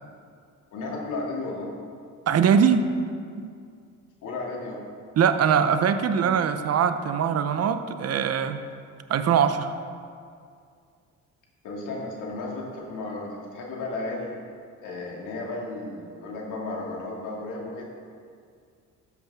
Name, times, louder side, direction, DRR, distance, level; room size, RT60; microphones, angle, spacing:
voice 1, 0.7-1.7 4.2-4.8 11.6-14.3 14.8-17.8, left 2 dB, 85° left, -2 dB, 2.3 m, -34 dB
voice 2, 2.3-2.8 3.4-3.5 5.2-8.6 9.1-9.7, right 7 dB, 55° right, 10 dB, 0.7 m, -22 dB
13.0 x 8.3 x 3.6 m, 2.3 s
cardioid pair, 90°, 30 cm